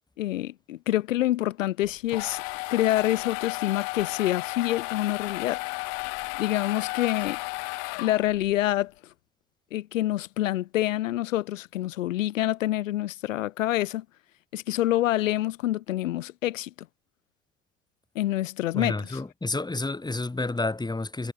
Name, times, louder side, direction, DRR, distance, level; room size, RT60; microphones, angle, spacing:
voice 1, 0.2-2.4 2.7-5.6 6.4-7.4 8.0-8.9 9.7-14.0 14.5-16.7 18.2-19.2, left 14 dB, 80° left, 4.0 m, -27 dB
sound 1, 1.8-8.5, left 39 dB, 65° left, 4.5 m, -34 dB
voice 2, 18.7-21.3, left 2 dB, 10° left, 7.9 m, -30 dB
hypercardioid pair, 95°, 38 cm